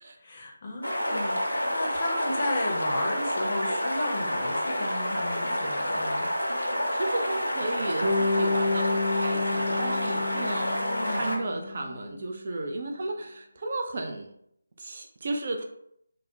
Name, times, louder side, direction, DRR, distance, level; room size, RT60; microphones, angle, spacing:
voice 1, 0.2-6.3 10.8-11.3, left 1 dB, 35° left, -1 dB, 0.5 m, -34 dB
sound 1, 0.8-11.4, equal, 85° left, 0.6 m, -29 dB
voice 2, 6.9-14.3 14.8-15.6, right 2 dB, 45° right, 3 dB, 0.3 m, -34 dB
Bass guitar, 8.0-12.3, left 3 dB, 70° right, 0.7 m, -30 dB
2.2 x 2.0 x 2.8 m, 0.72 s
figure-of-eight pair, 155°, 0 cm